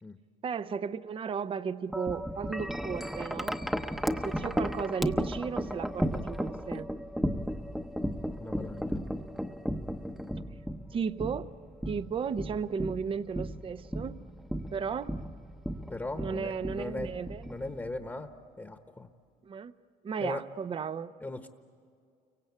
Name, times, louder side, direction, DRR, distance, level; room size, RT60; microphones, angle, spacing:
voice 1, 0.4-3.6 4.2-6.9 10.9-11.5 11.9-14.2 14.7-15.1 16.1-17.5 19.4-19.7 20.0-21.1, right 6 dB, 30° right, 14 dB, 0.6 m, -34 dB
Wind chime, 1.9-18.1, equal, ahead, 0.9 m, -35 dB
voice 2, 8.4-9.0 15.9-17.1 17.4-18.3 18.6-19.1 20.2-20.4 21.2-21.5, left 2 dB, 15° left, 6 dB, 1.2 m, -38 dB
30.0 x 24.0 x 8.4 m, 2.3 s
cardioid pair, 110°, 17 cm